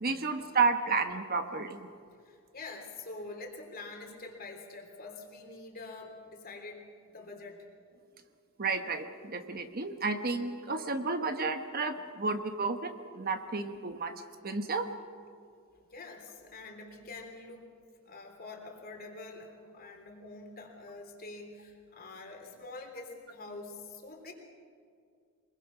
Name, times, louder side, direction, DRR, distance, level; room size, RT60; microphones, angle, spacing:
voice 1, 0.0-1.9 8.6-14.1 14.4-14.9, right 4 dB, 45° right, 7 dB, 1.1 m, -31 dB
voice 2, 2.2-7.6 15.9-17.7 18.0-24.3, left 3 dB, 45° left, 2 dB, 3.4 m, -46 dB
24.0 x 21.5 x 6.0 m, 2.3 s
head